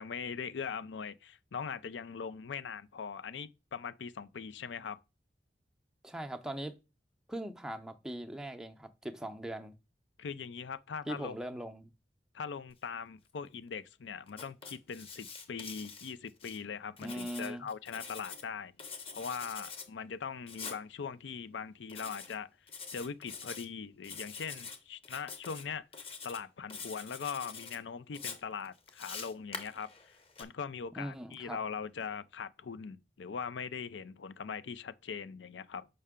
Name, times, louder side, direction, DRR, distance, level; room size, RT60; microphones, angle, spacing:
voice 1, 0.0-5.0 10.2-11.4 12.3-18.7 19.1-22.5 22.9-25.9 26.2-35.9, left 6 dB, 85° left, 0.5 m, -41 dB
voice 2, 6.0-6.7 7.3-9.7 11.1-11.9 17.0-17.7 31.0-31.6, right 1 dB, 5° right, 0.6 m, -40 dB
Writing, 14.3-16.6 17.0-18.4 18.8-19.9 20.5-20.8 21.9-22.4 22.7-23.6 24.0-24.8 25.0-25.6 25.9-26.4 26.7-27.8 28.1-30.4, left 5 dB, 30° left, 0.9 m, -45 dB
6.6 x 5.5 x 3.6 m
head